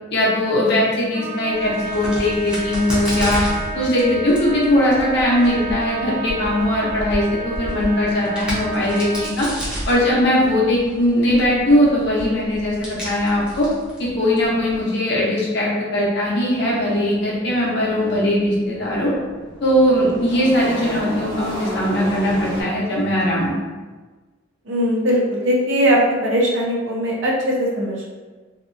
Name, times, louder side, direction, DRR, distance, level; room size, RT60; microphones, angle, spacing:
voice 1, 0.1-3.5 3.7-9.5 9.9-13.7 14.0-19.1 19.6-23.5, left 1 dB, 55° left, -5 dB, 0.7 m, -19 dB
Trumpet, 1.1-9.3, right 3 dB, 90° right, 0.9 m, -30 dB
Crack, 1.5-14.8, equal, 5° right, 0.6 m, -32 dB
sound 1, 19.2-22.6, equal, 50° right, 1.2 m, -31 dB
voice 2, 24.7-28.1, equal, 70° right, -2 dB, 0.6 m, -20 dB
2.7 x 2.3 x 2.5 m, 1.3 s
head